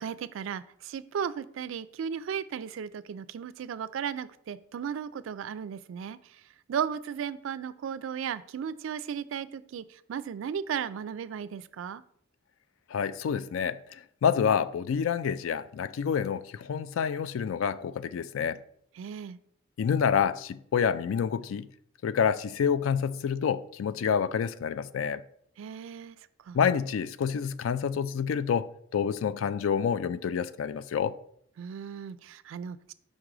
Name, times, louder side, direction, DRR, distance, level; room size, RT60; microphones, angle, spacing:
voice 1, 0.0-6.2 6.7-12.0 19.0-19.4 25.6-26.2 26.5-26.6 31.6-32.9, right 7 dB, 70° right, 0.3 m, -35 dB
voice 2, 12.9-13.8 14.2-18.6 19.8-21.7 22.0-25.2 26.5-31.1, left 7 dB, 75° left, 0.3 m, -28 dB
5.2 x 3.8 x 4.7 m
head